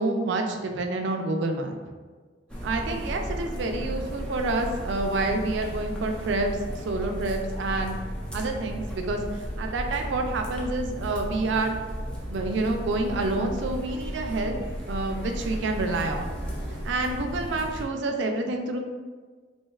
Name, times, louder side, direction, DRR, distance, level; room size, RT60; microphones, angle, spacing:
voice 1, 0.0-1.8 2.6-8.0 8.3-11.8 12.3-14.5 14.9-16.3 16.8-18.8, right 2 dB, 75° right, 4 dB, 0.4 m, -28 dB
sound 1, 2.5-17.8, equal, 5° left, 0.4 m, -34 dB
2.7 x 2.3 x 3.1 m, 1.4 s
head